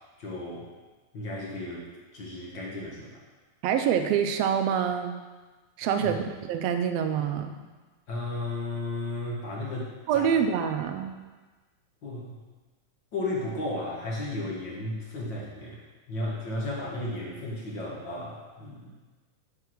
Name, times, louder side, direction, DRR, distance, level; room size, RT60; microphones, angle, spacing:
voice 1, 0.2-0.6 1.1-1.9 2.1-3.1 5.8-6.2 8.1-10.3 12.0-12.4 13.1-15.8 16.1-18.9, left 2 dB, 50° left, -4 dB, 1.7 m, -34 dB
voice 2, 3.6-5.1 5.8-6.2 6.5-7.5 10.1-11.2, right 8 dB, 75° right, 7 dB, 1.6 m, -26 dB
9.3 x 4.6 x 6.1 m, 1.3 s
omnidirectional pair, 3.4 m